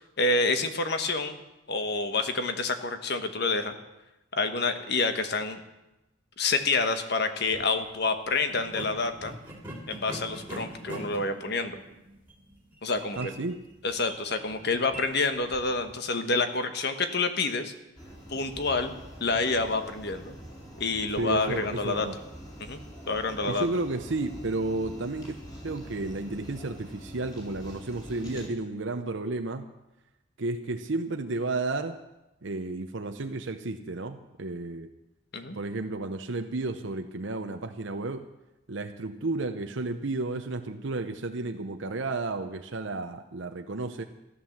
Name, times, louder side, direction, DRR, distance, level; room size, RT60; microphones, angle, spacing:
voice 1, 0.2-1.4 1.7-3.7 4.3-5.6 6.4-9.4 9.9-11.8 12.8-13.3 13.8-17.7 18.3-20.3 20.8-22.1 22.6-22.8 23.1-23.7 35.3-35.6, left 3 dB, 50° left, 8 dB, 1.3 m, -28 dB
sound 1, 7.4-7.7 8.5-16.0, right 1 dB, 10° right, 2.6 m, -43 dB
voice 2, 13.2-13.6 21.2-22.2 23.4-25.4 25.6-29.7 30.4-32.0 32.4-34.9 35.5-38.2 38.7-44.0, right 2 dB, 60° right, 6 dB, 0.8 m, -32 dB
sound 2, 18.0-28.5, equal, 20° left, 4.7 m, -45 dB
14.0 x 11.5 x 7.3 m, 0.97 s
head